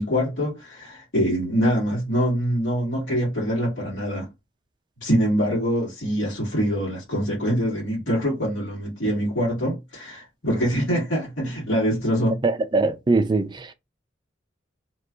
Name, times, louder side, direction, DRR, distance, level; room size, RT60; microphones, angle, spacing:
voice 1, 0.0-4.3 5.0-12.4, equal, 80° left, 1.6 m, -24 dB
voice 2, 12.4-13.7, right 3 dB, 25° right, 0.4 m, -22 dB
2.9 x 2.3 x 3.7 m
head